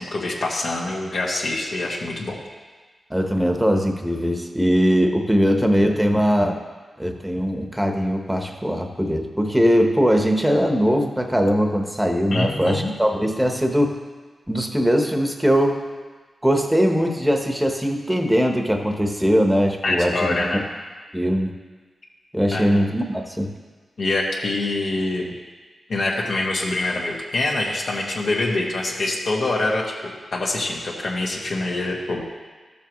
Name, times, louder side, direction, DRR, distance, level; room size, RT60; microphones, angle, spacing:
voice 1, 0.0-2.4 12.3-12.9 19.8-20.7 22.5-22.8 24.0-25.3 25.9-29.8 30.3-32.2, left 2 dB, 75° left, -2 dB, 1.6 m, -25 dB
voice 2, 3.1-6.6 7.0-14.0 14.5-15.8 16.4-20.4 21.1-21.5 22.3-23.5, equal, 5° right, 3 dB, 1.0 m, -20 dB
13.0 x 7.1 x 3.1 m, 1.4 s
cardioid pair, 65°, 0 cm